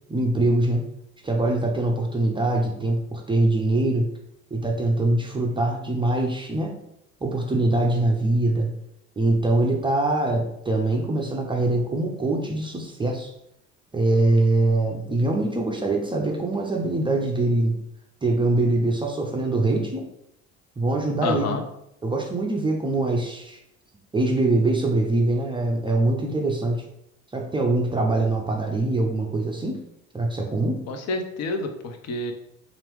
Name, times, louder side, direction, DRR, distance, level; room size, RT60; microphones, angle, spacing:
voice 1, 0.1-0.9 1.2-4.1 4.5-6.8 7.2-8.7 9.2-13.3 13.9-17.8 18.2-20.1 20.8-21.5 22.0-23.6 24.1-26.9 27.3-29.8 30.1-30.8, right 2 dB, 15° right, 1 dB, 0.4 m, -23 dB
voice 2, 21.2-21.6 30.9-32.3, left 3 dB, 40° left, 5 dB, 0.6 m, -28 dB
2.9 x 2.5 x 3.2 m, 0.78 s
figure-of-eight pair, 55°, 39 cm